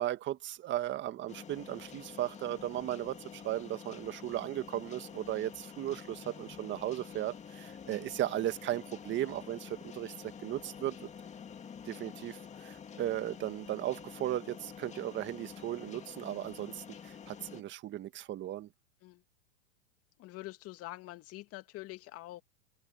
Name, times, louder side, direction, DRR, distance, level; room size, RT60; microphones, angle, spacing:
voice 1, 0.0-11.1 11.8-18.7, right 13 dB, 25° right, 1.7 m, -36 dB
sound 1, 1.3-17.6, left 7 dB, 15° left, 2.1 m, -48 dB
voice 2, 20.2-22.4, left 18 dB, 35° left, 2.0 m, -45 dB
open air
hypercardioid pair, 125°, 43 cm